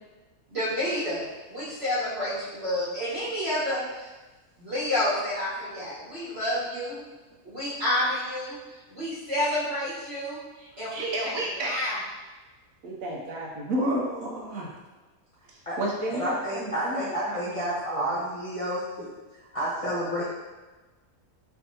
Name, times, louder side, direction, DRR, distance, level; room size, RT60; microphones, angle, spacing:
voice 1, 0.5-4.1 4.6-7.0 7.4-8.6 8.9-11.3 11.6-12.0, left 1 dB, 45° right, -11 dB, 1.4 m, -29 dB
voice 2, 10.9-11.8 12.8-14.7 15.8-18.1, right 1 dB, 70° right, -2 dB, 1.0 m, -31 dB
voice 3, 16.1-19.1 19.5-20.2, equal, 30° left, -9 dB, 0.7 m, -30 dB
4.7 x 3.4 x 2.7 m, 1.2 s
omnidirectional pair, 1.6 m